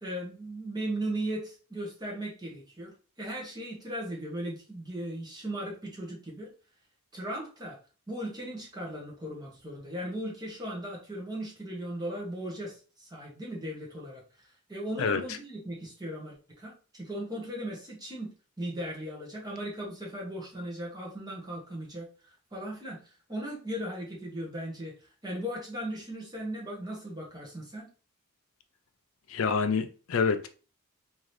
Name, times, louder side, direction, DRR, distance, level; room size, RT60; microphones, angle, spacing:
voice 1, 0.0-6.5 7.1-7.8 8.1-14.2 14.7-18.3 18.6-23.0 23.3-24.9 25.2-27.9, right 1 dB, 20° right, 1.0 m, -37 dB
voice 2, 29.3-30.5, left 5 dB, 65° left, 0.4 m, -27 dB
3.8 x 2.7 x 3.2 m
head